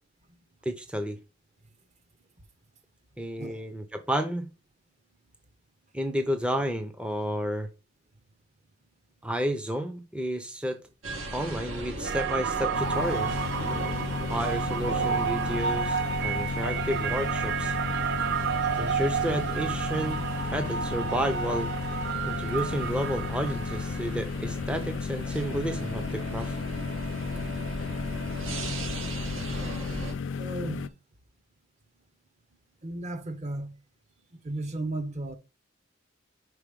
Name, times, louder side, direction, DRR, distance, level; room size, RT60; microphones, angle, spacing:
voice 1, 0.6-1.2 3.2-4.5 5.9-7.7 9.2-10.8 11.3-13.4 14.3-17.8 18.8-20.2 20.5-21.7 22.3-26.6, equal, 5° right, 0.5 m, -31 dB
sound 1, 11.0-30.1, right 1 dB, 85° right, 1.4 m, -38 dB
sound 2, 12.0-24.3, right 7 dB, 60° right, 0.4 m, -31 dB
sound 3, 12.7-30.9, left 5 dB, 65° left, 0.4 m, -34 dB
voice 2, 30.4-30.9 32.8-33.7 34.4-35.4, right 2 dB, 35° right, 0.8 m, -34 dB
5.4 x 4.8 x 5.1 m
head